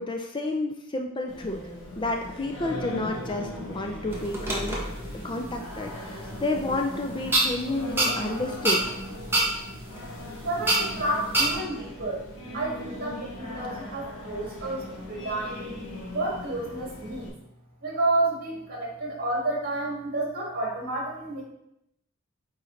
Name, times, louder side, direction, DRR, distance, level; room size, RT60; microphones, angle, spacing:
voice 1, 0.0-1.6 2.0-4.8 5.1-8.8, left 2 dB, 25° left, 3 dB, 0.4 m, -30 dB
Singing, 1.3-17.3, left 1 dB, 90° left, 1.9 m, -39 dB
sound 1, 4.1-11.6, right 2 dB, 10° right, 1.1 m, -29 dB
voice 2, 10.4-12.3 12.5-15.7 16.1-17.4 17.8-21.4, right 2 dB, 45° right, -3 dB, 2.2 m, -30 dB
8.7 x 4.0 x 3.2 m, 0.82 s
head